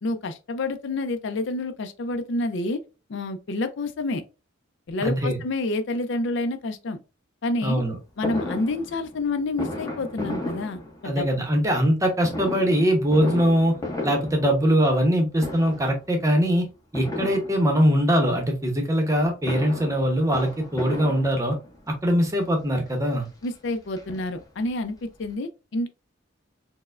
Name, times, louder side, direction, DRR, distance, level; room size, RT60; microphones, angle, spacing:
voice 1, 0.0-2.8 3.1-4.2 4.9-7.0 7.4-7.8 8.2-11.3 23.4-25.9, left 2 dB, 65° left, 0.4 m, -28 dB
voice 2, 5.0-5.4 7.6-8.0 11.0-13.8 14.0-16.7 16.9-21.6 21.9-23.3, equal, 15° right, 0.7 m, -22 dB
Fireworks, 8.2-11.4 12.2-15.1 15.4-16.0 16.9-18.0 19.2-21.8 22.6-22.7 23.0-23.1 23.4-24.7 25.0-25.1 25.3-25.4, left 1 dB, 20° left, 0.7 m, -34 dB
4.4 x 2.1 x 2.4 m
head